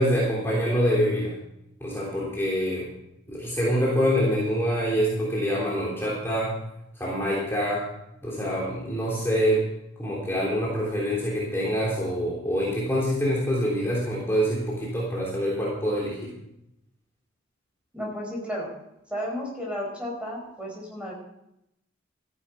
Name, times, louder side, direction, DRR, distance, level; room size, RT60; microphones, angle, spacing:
voice 1, 0.0-1.3 1.8-2.9 3.3-6.6 6.9-7.8 8.2-9.7 10.0-16.3, equal, 15° left, -6 dB, 3.3 m, -25 dB
voice 2, 17.9-18.7 19.1-21.1, equal, 5° right, -1 dB, 4.6 m, -33 dB
14.0 x 11.0 x 5.2 m, 0.82 s
head